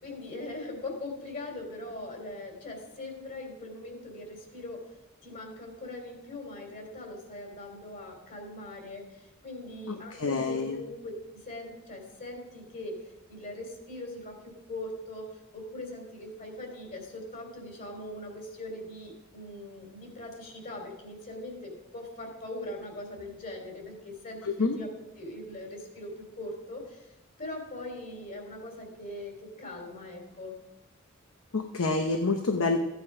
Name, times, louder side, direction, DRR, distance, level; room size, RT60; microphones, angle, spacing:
voice 1, 0.0-4.9 5.2-13.0 13.3-15.3 15.5-24.9 25.2-27.1 27.4-30.6, left 1 dB, 45° left, 1 dB, 3.2 m, -41 dB
voice 2, 9.9-10.8 24.4-24.8 31.5-32.8, left 3 dB, 75° left, 5 dB, 0.9 m, -28 dB
14.5 x 9.3 x 4.9 m, 0.96 s
head